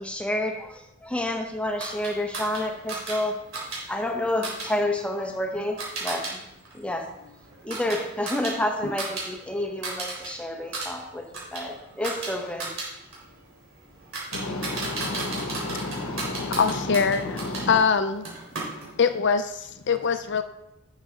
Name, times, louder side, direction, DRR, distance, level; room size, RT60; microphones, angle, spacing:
voice 1, 0.0-3.4 3.9-6.4 6.7-7.1 7.6-12.7, left 1 dB, 5° left, 1.0 m, -29 dB
sound 1, 1.8-6.3 6.6-9.3 9.6-10.3 10.6-17.7 18.2-19.2, right 3 dB, 70° right, 3.8 m, -35 dB
voice 2, 14.3-17.8, left 2 dB, 75° left, 1.0 m, -32 dB
voice 3, 16.5-17.4 17.7-18.3 19.0-20.4, left 5 dB, 55° left, 0.5 m, -23 dB
11.0 x 6.6 x 3.8 m
head